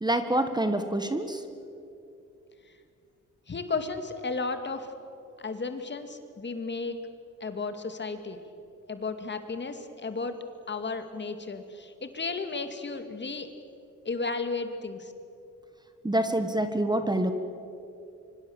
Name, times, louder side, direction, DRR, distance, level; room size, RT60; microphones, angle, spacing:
voice 1, 0.0-1.4 16.0-17.3, right 1 dB, 15° right, 8 dB, 1.6 m, -26 dB
voice 2, 3.5-4.9 5.4-7.0 7.4-8.4 8.9-10.4 10.7-13.5 14.0-15.1, left 4 dB, 35° left, 8 dB, 2.3 m, -34 dB
24.5 x 24.5 x 7.3 m, 2.7 s
cardioid pair, 85°, 31 cm